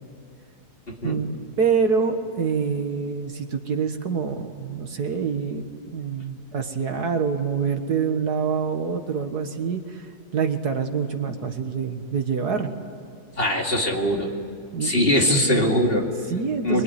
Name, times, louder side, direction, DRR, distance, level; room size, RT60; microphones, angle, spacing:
voice 1, 1.0-5.6 5.9-10.1 10.3-12.7 14.7-15.1 16.3-16.8, right 6 dB, 60° right, 6 dB, 1.9 m, -26 dB
voice 2, 13.4-14.3 14.8-16.1 16.6-16.8, equal, 30° left, 0 dB, 2.7 m, -21 dB
25.0 x 23.0 x 9.7 m, 2.4 s
omnidirectional pair, 1.9 m